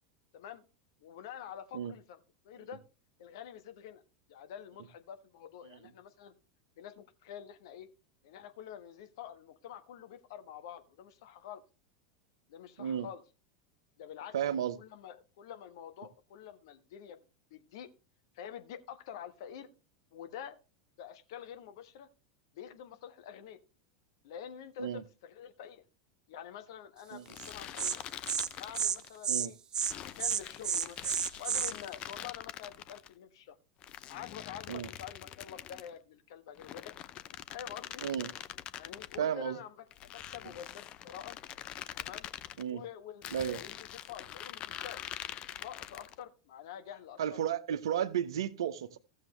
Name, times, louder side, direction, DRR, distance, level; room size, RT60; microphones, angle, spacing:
voice 1, 1.0-2.2 2.4-2.8 3.2-4.0 4.3-6.3 6.8-7.9 8.2-11.6 12.5-13.2 14.0-14.3 14.8-17.2 17.5-17.9 18.3-19.7 20.1-20.6 21.0-22.1 22.5-23.6 24.2-25.8 26.3-28.0 28.6-29.6 30.0-33.6 34.1-36.9 37.5-38.0 38.7-39.8 40.1-41.4 42.0-42.3 42.7-43.8 44.1-45.1 45.6-47.2, left 9 dB, 60° left, 1.3 m, -47 dB
voice 2, 14.3-14.8 24.8-25.0 27.1-27.3 29.3-29.5 34.7-34.9 38.0-38.3 39.2-39.6 42.6-42.8 43.3-43.6 47.2-49.0, right 9 dB, 65° right, 0.9 m, -33 dB
sound 1, 27.3-29.2 29.8-33.1 33.8-35.9 36.5-39.2 39.9-42.6 43.2-46.2, left 12 dB, 40° left, 0.6 m, -44 dB
Insect, 27.4-27.5 27.8-27.9 28.3-28.5 28.7-29.0 29.2-29.5 29.7-29.9 30.2-31.7, right 8 dB, 30° right, 0.8 m, -31 dB
15.5 x 7.3 x 3.1 m
figure-of-eight pair, 85°, 3 cm